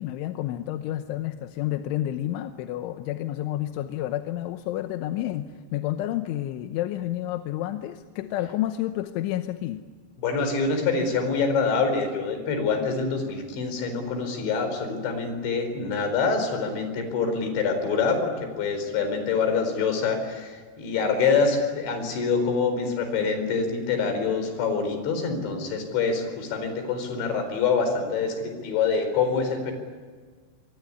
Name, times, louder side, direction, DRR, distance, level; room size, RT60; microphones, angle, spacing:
voice 1, 0.0-9.9, left 13 dB, 75° left, 8 dB, 3.1 m, -30 dB
voice 2, 10.2-29.7, left 5 dB, 60° left, 7 dB, 6.4 m, -25 dB
26.0 x 22.5 x 10.0 m, 1.5 s
omnidirectional pair, 6.0 m